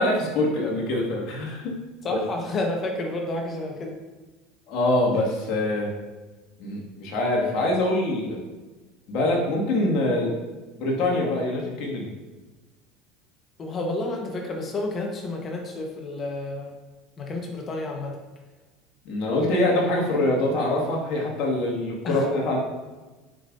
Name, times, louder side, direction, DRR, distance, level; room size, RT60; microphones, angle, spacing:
voice 1, 0.0-1.8 2.1-2.2 4.7-5.9 6.6-8.4 9.1-10.3 10.8-12.1 19.1-22.6, left 1 dB, 60° left, -2 dB, 2.0 m, -24 dB
voice 2, 2.0-3.9 13.6-16.7 17.2-18.2 22.0-22.3, left 2 dB, 40° left, 2 dB, 1.2 m, -30 dB
9.9 x 5.4 x 2.7 m, 1.2 s
hypercardioid pair, 85°, 0 cm